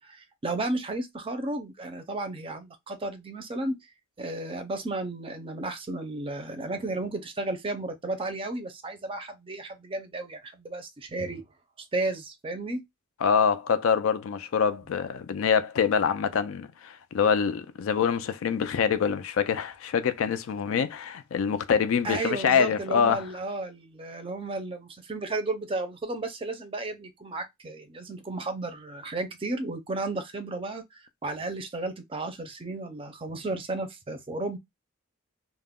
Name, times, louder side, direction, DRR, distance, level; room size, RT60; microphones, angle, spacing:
voice 1, 0.0-3.8 4.2-11.4 11.8-12.8 22.0-34.6, right 2 dB, 25° right, 0.5 m, -33 dB
voice 2, 13.2-23.2, left 7 dB, 75° left, 0.4 m, -25 dB
2.3 x 2.1 x 3.4 m
head